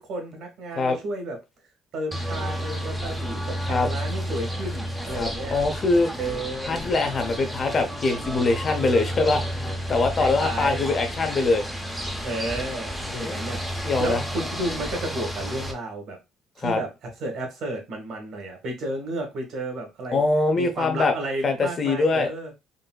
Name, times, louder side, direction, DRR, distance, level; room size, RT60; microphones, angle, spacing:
voice 1, 0.0-1.4 1.9-5.5 6.2-6.8 10.2-10.8 12.2-13.6 14.0-16.2 16.6-16.9 17.2-20.2 20.5-22.5, right 1 dB, 60° right, 1.5 m, -32 dB
sound 1, 2.1-15.7, equal, ahead, 0.6 m, -31 dB
voice 2, 5.2-6.1 6.7-11.6 13.1-13.4 13.8-14.2 16.6-16.8 20.1-21.1 21.4-22.3, left 3 dB, 35° left, 0.6 m, -23 dB
3.9 x 2.7 x 2.2 m
cardioid pair, 135°, 0 cm